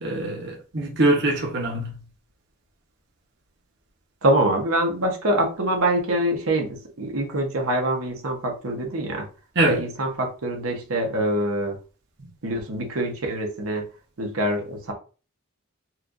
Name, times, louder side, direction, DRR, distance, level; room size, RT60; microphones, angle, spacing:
voice 1, 0.0-1.9 9.6-9.8, right 2 dB, 55° right, 0.8 m, -23 dB
voice 2, 4.2-9.3 9.6-11.8 12.4-13.8 14.2-14.9, right 1 dB, 80° right, 0.9 m, -25 dB
4.3 x 2.4 x 2.5 m
head